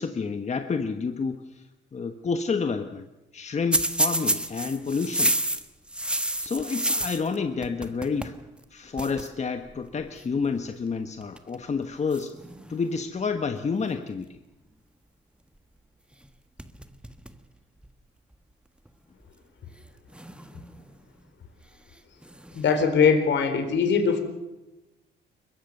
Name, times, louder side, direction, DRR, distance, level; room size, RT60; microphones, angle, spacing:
voice 1, 0.0-1.4 1.9-3.1 3.3-5.4 6.4-8.4 8.7-12.4 12.7-14.4, left 5 dB, 35° left, 7 dB, 1.3 m, -29 dB
sound 1, 3.7-7.4 7.6-8.4 8.6-8.7 9.0-9.3 10.2-10.4 11.2-11.6 12.1-13.2 16.1-16.3 16.6-17.4 17.8-17.9 18.9-19.0 20.1-21.0 22.2-22.8, right 1 dB, 5° right, 1.4 m, -29 dB
voice 2, 22.5-24.2, left 6 dB, 65° left, 7 dB, 4.1 m, -21 dB
22.5 x 21.5 x 6.7 m, 1.0 s
cardioid pair, 90°, 20 cm